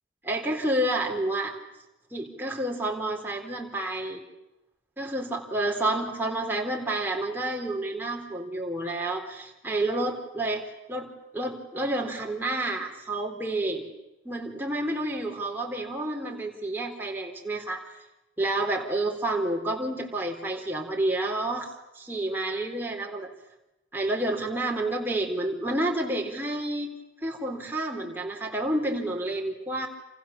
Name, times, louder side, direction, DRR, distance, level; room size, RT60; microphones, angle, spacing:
voice 1, 0.2-1.5 2.1-4.2 5.0-10.6 10.9-13.8 14.2-17.8 18.4-21.7 22.0-23.3 23.9-26.9 27.2-29.9, right 1 dB, 10° right, 1 dB, 4.0 m, -29 dB
29.0 x 29.0 x 7.2 m, 0.94 s
head